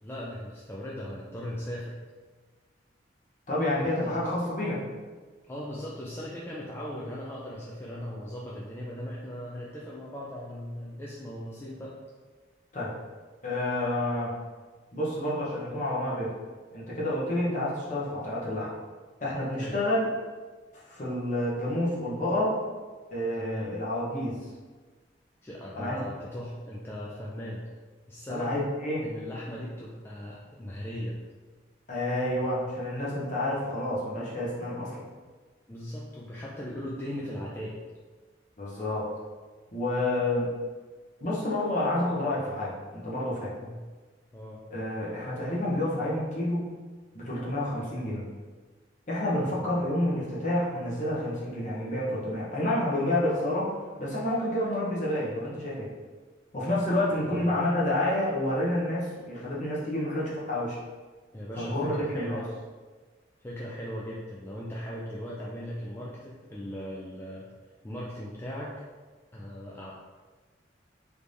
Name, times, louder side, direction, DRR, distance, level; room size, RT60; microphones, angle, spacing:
voice 1, 0.0-2.0 4.0-4.2 5.5-12.0 19.6-19.8 23.4-23.7 25.4-27.6 28.1-28.5 29.0-31.2 35.7-37.8 43.5-43.8 44.3-44.6 49.5-49.9 57.2-57.6 61.3-62.5 63.4-67.5 67.8-68.7 69.3-69.9, equal, 15° left, -6 dB, 0.3 m, -38 dB
voice 2, 3.5-4.8 12.7-12.9 13.4-14.3 14.9-16.3 16.7-18.7 19.2-20.1 20.7-22.6 23.1-24.4 25.8-26.0 28.3-29.1 31.9-35.1 38.6-39.1 39.7-40.5 41.2-43.5 44.7-46.7 47.1-48.3 49.1-53.7 54.0-55.9 56.5-60.8 61.6-62.4, left 1 dB, 40° left, -6 dB, 0.9 m, -29 dB
3.3 x 3.3 x 2.6 m, 1.4 s
head